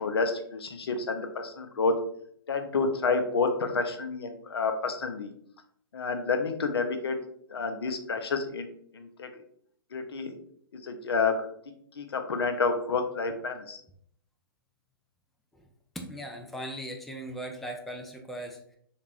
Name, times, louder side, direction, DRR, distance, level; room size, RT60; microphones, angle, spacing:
voice 1, 0.0-1.9 2.5-5.3 5.9-7.2 7.5-8.7 8.9-9.3 9.9-10.3 10.8-11.5 12.0-13.8, left 4 dB, 75° left, 6 dB, 0.6 m, -29 dB
voice 2, 16.0-18.8, right 1 dB, ahead, 2 dB, 0.3 m, -38 dB
3.3 x 2.5 x 3.4 m, 0.66 s
hypercardioid pair, 120°, 13 cm